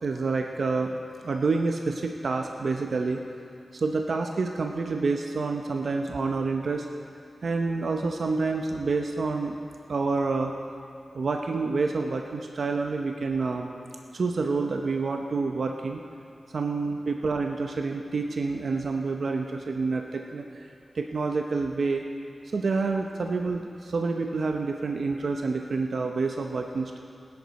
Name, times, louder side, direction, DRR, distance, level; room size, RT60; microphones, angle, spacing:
voice 1, 0.0-3.2 3.7-6.9 7.4-9.6 9.9-10.5 11.1-13.7 14.1-16.0 16.5-20.6 20.9-22.0 22.5-27.0, right 4 dB, 70° right, 3 dB, 0.7 m, -28 dB
19.0 x 10.5 x 4.1 m, 2.5 s
wide cardioid pair, 85°, 0 cm